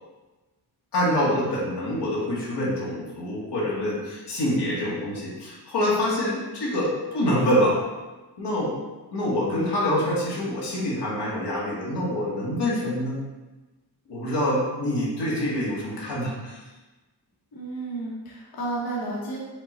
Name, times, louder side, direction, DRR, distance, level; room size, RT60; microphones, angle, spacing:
voice 1, 0.9-7.8 8.4-8.7 9.1-13.2 14.1-16.6, left 1 dB, 85° left, -5 dB, 1.3 m, -26 dB
voice 2, 17.5-19.4, right 2 dB, 60° left, -4 dB, 1.0 m, -32 dB
5.2 x 2.3 x 4.1 m, 1.2 s
wide cardioid pair, 100°, 41 cm